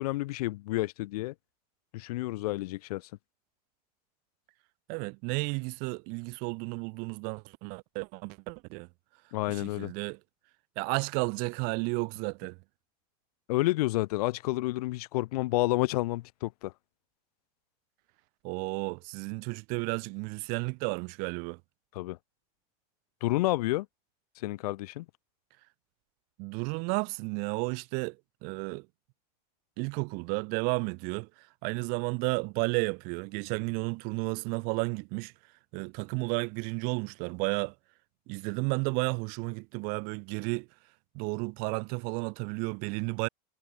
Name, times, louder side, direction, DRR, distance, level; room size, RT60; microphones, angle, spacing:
voice 1, 0.0-1.3 1.9-3.1 9.3-9.9 13.5-16.7 21.9-22.2 23.2-23.9 24.4-25.1, left 19 dB, 70° left, 1.6 m, -30 dB
voice 2, 4.9-8.9 9.5-10.2 10.8-12.6 18.4-21.6 26.4-28.2 28.4-28.9 29.8-31.3 31.6-35.3 35.7-37.7 38.3-40.7 41.1-43.3, right 33 dB, 50° right, 2.1 m, -32 dB
supercardioid pair, 160°, 20 cm